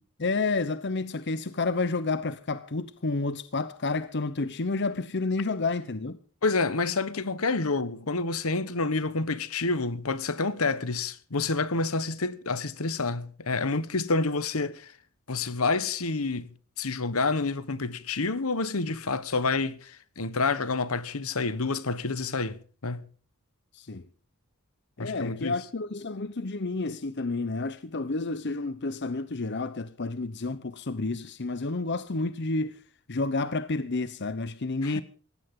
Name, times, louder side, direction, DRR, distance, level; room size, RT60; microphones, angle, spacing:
voice 1, 0.2-6.2 23.7-24.0 25.0-32.8 33.1-35.0, left 3 dB, 50° left, 0.8 m, -30 dB
voice 2, 6.4-14.9 15.3-16.5 16.8-23.0 25.0-25.5 34.8-35.0, left 3 dB, 75° left, 1.2 m, -28 dB
19.0 x 16.0 x 3.8 m
head